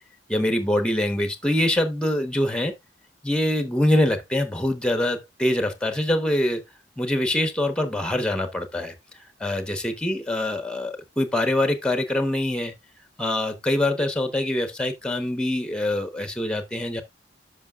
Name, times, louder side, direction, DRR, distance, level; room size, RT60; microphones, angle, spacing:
voice 1, 0.3-2.7 3.2-6.6 7.0-8.9 9.4-12.7 13.2-17.0, left 1 dB, 5° left, 0.9 m, -24 dB
11.5 x 5.7 x 2.3 m
head